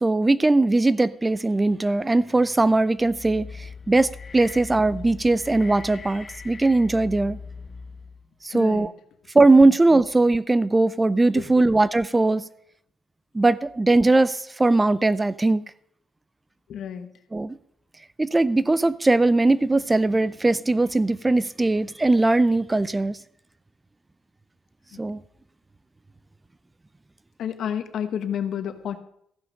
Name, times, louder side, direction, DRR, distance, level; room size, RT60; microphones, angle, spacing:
voice 1, 0.0-7.4 8.4-8.9 9.3-12.4 13.3-15.6 17.3-17.6 18.2-23.2 25.0-25.2, right 2 dB, 15° right, 17 dB, 0.4 m, -20 dB
sound 1, 3.0-8.3, left 5 dB, 35° left, 0.8 m, -40 dB
voice 2, 8.5-8.9 9.6-9.7 11.3-11.7 16.7-17.1 24.9-25.0 27.4-29.0, left 9 dB, 70° left, 9 dB, 1.1 m, -31 dB
14.5 x 5.7 x 6.4 m, 0.70 s
cardioid pair, 90°, 0 cm